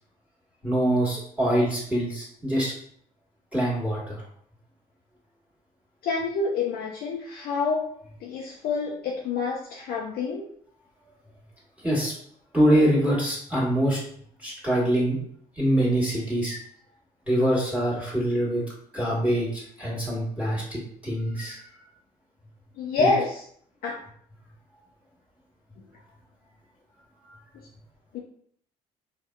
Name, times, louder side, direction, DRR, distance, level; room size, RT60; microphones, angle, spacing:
voice 1, 0.6-2.7 3.5-4.2 11.8-12.1 12.5-14.0 14.4-15.2 15.6-16.6 17.3-18.6 18.9-21.6 23.0-23.1 27.3-27.4, right 1 dB, 5° right, -6 dB, 1.3 m, -24 dB
voice 2, 6.0-7.9 8.2-10.5 22.8-23.4 23.8-24.0 28.1-28.2, left 4 dB, 55° left, -2 dB, 0.5 m, -27 dB
4.5 x 2.1 x 2.2 m, 0.63 s
figure-of-eight pair, 50°, 19 cm